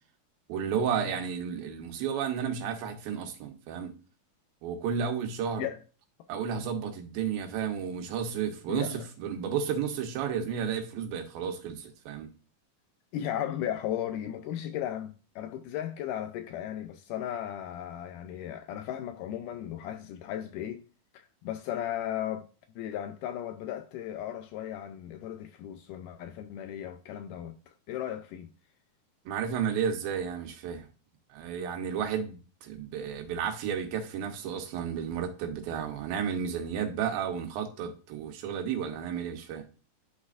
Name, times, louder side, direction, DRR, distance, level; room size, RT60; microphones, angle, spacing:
voice 1, 0.5-3.9 4.6-5.7 6.3-12.3 29.3-30.9 31.3-39.6, right 7 dB, 80° right, 2.7 m, -32 dB
voice 2, 8.7-9.0 13.1-20.8 21.1-22.5 22.8-27.6 27.9-28.5, left 11 dB, 85° left, 1.9 m, -36 dB
11.0 x 4.1 x 2.4 m
omnidirectional pair, 4.2 m